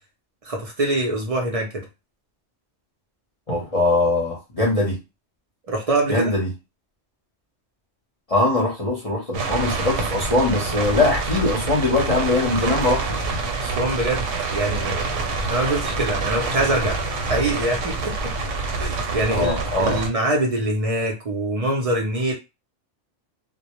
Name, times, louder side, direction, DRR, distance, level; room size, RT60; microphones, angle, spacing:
voice 1, 0.4-1.9 5.7-6.4 13.6-15.1 15.5-17.0 17.3-18.3 18.8-22.3, right 1 dB, 55° right, 0 dB, 0.4 m, -24 dB
voice 2, 3.5-5.0 6.1-6.5 8.3-13.3 19.3-20.0, left 2 dB, 35° left, -4 dB, 0.7 m, -21 dB
sound 1, 9.3-20.1, right 3 dB, 85° right, 1.0 m, -26 dB
2.1 x 2.0 x 2.9 m, 0.25 s
omnidirectional pair, 1.3 m